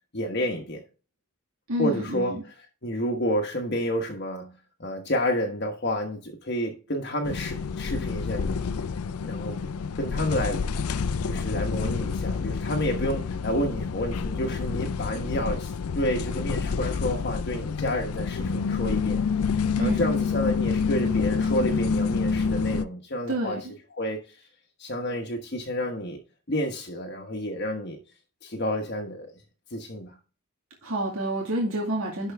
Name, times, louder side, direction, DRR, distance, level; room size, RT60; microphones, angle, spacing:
voice 1, 0.1-0.8 1.8-2.4 2.8-8.7 9.2-9.6 10.0-10.6 11.3-19.2 19.8-23.6 24.0-24.4 24.8-26.2 26.5-28.0 28.4-29.3 29.7-30.2, equal, 50° left, 1.3 m, -30 dB
voice 2, 1.7-2.3 19.8-20.1 23.3-23.6 30.8-32.3, right 1 dB, 85° right, 2.3 m, -28 dB
sound 1, 7.2-22.8, left 5 dB, 90° left, 0.5 m, -28 dB
11.5 x 4.8 x 3.5 m
head